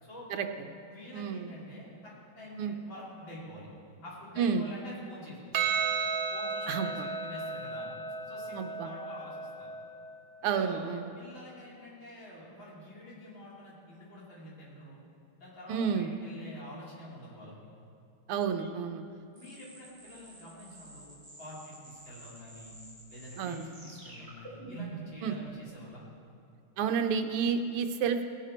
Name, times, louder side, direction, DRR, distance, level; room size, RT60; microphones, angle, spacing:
voice 1, 0.6-3.7 4.0-5.8 6.3-7.9 8.3-9.7 10.4-10.8 11.2-15.0 15.4-17.5 18.6-18.7 19.3-21.1 21.4-22.7 23.1-26.0, left 1 dB, 60° left, -7 dB, 4.0 m, -47 dB
voice 2, 1.1-1.5 2.6-2.7 4.4-4.7 6.7-7.1 8.5-8.9 10.4-11.1 15.7-16.1 18.3-19.0 23.4-23.6 25.2-25.3 26.8-28.2, right 6 dB, 85° right, 6 dB, 1.7 m, -30 dB
Percussion, 5.5-10.2, right 5 dB, 65° right, 1.8 m, -34 dB
sound 1, 19.4-25.2, right 3 dB, 35° right, 4.0 m, -48 dB
18.0 x 10.0 x 4.4 m, 2.5 s
omnidirectional pair, 2.4 m